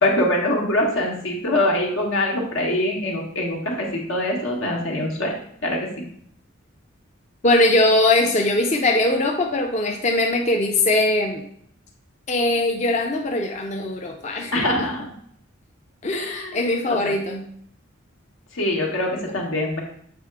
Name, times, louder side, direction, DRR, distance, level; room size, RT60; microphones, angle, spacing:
voice 1, 0.0-5.4 5.6-5.9 14.5-15.1 16.1-16.6 16.9-17.2 18.5-19.8, left 1 dB, 85° left, -1 dB, 1.6 m, -23 dB
voice 2, 7.4-11.4 12.3-14.5 16.0-17.5, left 2 dB, 35° left, 2 dB, 0.5 m, -21 dB
7.6 x 3.5 x 4.7 m, 0.67 s
head